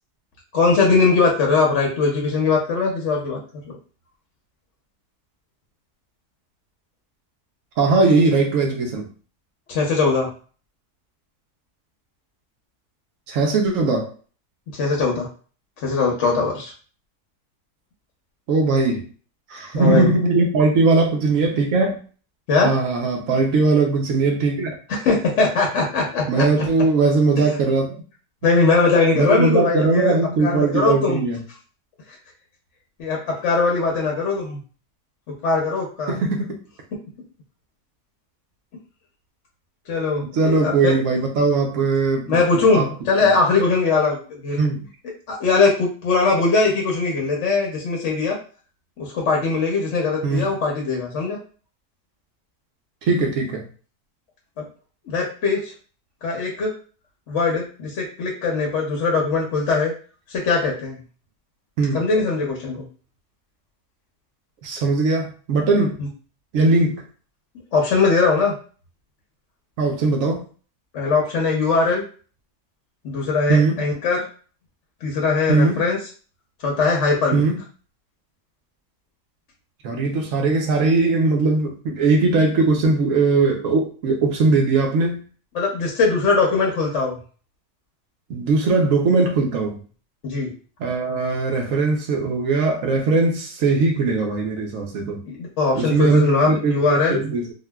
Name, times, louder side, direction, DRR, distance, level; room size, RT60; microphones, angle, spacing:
voice 1, 0.5-3.4 9.7-10.3 14.7-15.3 15.8-16.7 19.7-20.1 22.5-22.7 24.9-26.6 28.4-31.2 33.0-34.6 35.4-36.2 39.9-41.2 42.3-44.7 45.3-48.4 49.0-51.4 54.6-54.7 55.1-55.7 56.2-56.7 57.3-59.9 60.3-61.0 61.9-62.8 66.0-66.1 67.7-68.6 70.9-72.0 73.0-74.3 75.0-76.0 76.6-77.5 85.5-87.2 90.2-90.5 95.2-97.2, left 4 dB, 60° left, -1 dB, 0.9 m, -20 dB
voice 2, 7.8-9.0 13.3-14.1 18.5-19.0 19.5-22.0 22.6-24.7 26.3-27.9 29.1-31.4 36.1-36.4 40.3-42.4 42.7-42.9 43.2-43.3 44.6-44.8 50.2-50.5 53.1-53.6 61.8-62.0 64.6-65.9 66.5-67.0 69.8-70.4 73.5-73.7 75.5-75.8 77.3-77.6 79.8-85.2 88.3-89.8 90.8-95.2 95.7-97.5, right 3 dB, 65° right, 2 dB, 1.0 m, -19 dB
3.7 x 2.2 x 2.2 m, 0.39 s
omnidirectional pair, 1.7 m